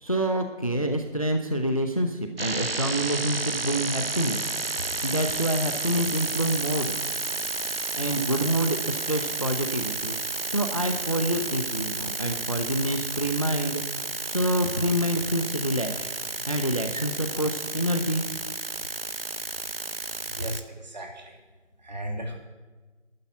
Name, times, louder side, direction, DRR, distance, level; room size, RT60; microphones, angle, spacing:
voice 1, 0.0-4.5 4.8-6.9 8.0-18.2, right 1 dB, 30° left, 7 dB, 0.8 m, -27 dB
sound 1, 2.4-20.6, right 3 dB, 50° right, 0.9 m, -32 dB
voice 2, 20.2-21.4 21.8-22.4, equal, 35° right, 2 dB, 2.7 m, -36 dB
12.0 x 9.5 x 9.4 m, 1.3 s
figure-of-eight pair, 170°, 37 cm